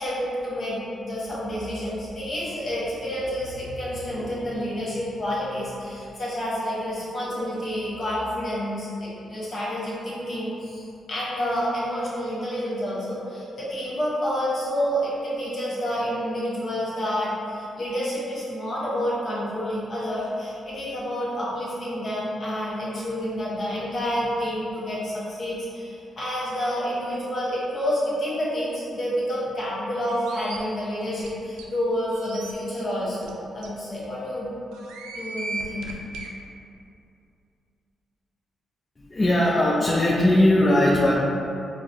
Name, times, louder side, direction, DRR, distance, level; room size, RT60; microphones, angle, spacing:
voice 1, 0.0-34.5 35.1-36.0, equal, 50° left, -8 dB, 1.3 m, -29 dB
sound 1, 30.1-30.6 31.2-31.3 31.6-31.7 32.1-32.5 33.2-33.3 33.6-33.7 34.7-36.3, right 3 dB, 90° right, 0.3 m, -36 dB
voice 2, 39.0-41.2, left 1 dB, 35° left, -6 dB, 0.5 m, -19 dB
4.6 x 2.0 x 2.7 m, 2.6 s
supercardioid pair, 55°, 0 cm